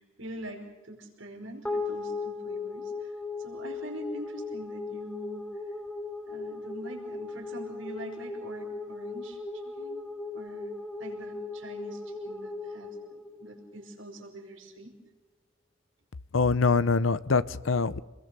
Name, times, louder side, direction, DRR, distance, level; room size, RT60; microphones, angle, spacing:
voice 1, 0.0-5.4 6.3-10.0 10.3-14.9, right 1 dB, 85° right, 2 dB, 5.2 m, -44 dB
sound 1, 1.6-14.2, left 3 dB, 5° left, 3.6 m, -37 dB
voice 2, 16.3-18.0, left 4 dB, 85° left, 16 dB, 0.7 m, -24 dB
28.5 x 21.0 x 6.9 m, 1.1 s
head